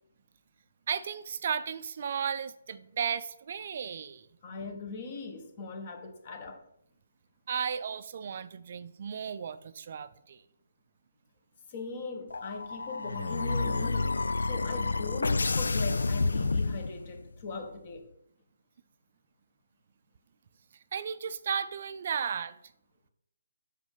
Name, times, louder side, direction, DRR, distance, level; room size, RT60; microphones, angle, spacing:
voice 1, 0.9-4.3 7.5-10.4 20.9-22.6, right 7 dB, 45° right, 14 dB, 0.4 m, -34 dB
voice 2, 4.4-6.6 11.7-18.1, left 3 dB, 35° left, 5 dB, 1.4 m, -40 dB
sound 1, 12.3-17.3, left 3 dB, 80° left, 0.3 m, -29 dB
6.4 x 5.0 x 5.5 m, 0.75 s
hypercardioid pair, 155°, 0 cm